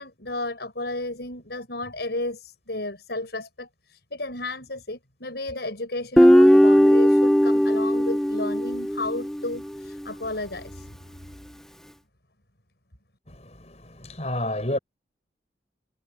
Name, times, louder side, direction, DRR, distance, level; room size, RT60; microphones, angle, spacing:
voice 1, 0.0-10.9, left 2 dB, 65° left, 6.3 m, -33 dB
Guitar, 6.2-9.5, equal, 5° left, 0.8 m, -17 dB
voice 2, 13.3-14.8, left 1 dB, 35° left, 6.8 m, -30 dB
head